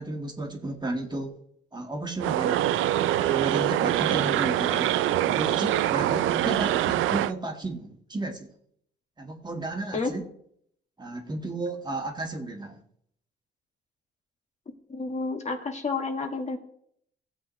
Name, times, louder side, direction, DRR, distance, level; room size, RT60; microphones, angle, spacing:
voice 1, 0.0-1.4 1.7-2.7 3.2-4.9 5.2-8.5 9.2-10.2 11.0-12.8, right 2 dB, 20° right, 2 dB, 1.7 m, -33 dB
sound 1, 2.2-7.3, right 13 dB, 85° right, 0.5 m, -24 dB
voice 2, 14.9-16.6, left 3 dB, 35° left, 3 dB, 1.7 m, -30 dB
17.0 x 7.3 x 3.1 m, 0.67 s
cardioid pair, 90°, 20 cm